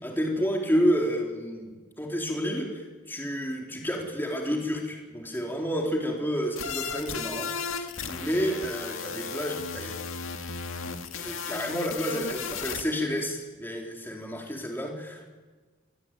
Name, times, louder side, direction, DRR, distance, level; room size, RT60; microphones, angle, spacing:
voice 1, 0.0-10.0 10.8-15.4, equal, 10° left, 1 dB, 4.2 m, -30 dB
sound 1, 6.6-12.8, left 6 dB, 75° left, 2.1 m, -35 dB
28.0 x 22.0 x 9.3 m, 1.4 s
head